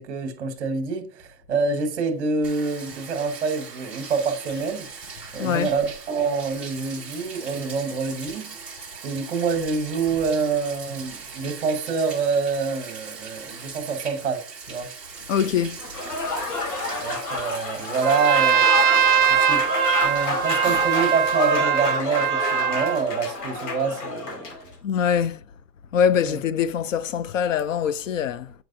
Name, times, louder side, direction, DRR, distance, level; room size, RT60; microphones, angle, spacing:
voice 1, 0.0-4.9 5.3-8.5 9.0-14.9 17.0-19.0 19.3-19.7 20.0-24.7 26.3-26.4, right 5 dB, 45° right, 1.3 m, -26 dB
Bathtub (filling or washing), 2.4-21.5, right 5 dB, ahead, 0.7 m, -40 dB
voice 2, 5.4-5.7 15.3-15.8 20.6-20.8 24.8-25.4 25.9-28.5, left 8 dB, 55° left, 0.5 m, -23 dB
Applause / Crowd, 15.8-24.6, left 3 dB, 70° left, 2.1 m, -29 dB
Trumpet, 18.0-23.0, right 8 dB, 60° right, 0.9 m, -21 dB
7.8 x 4.6 x 2.7 m
hypercardioid pair, 150°, 49 cm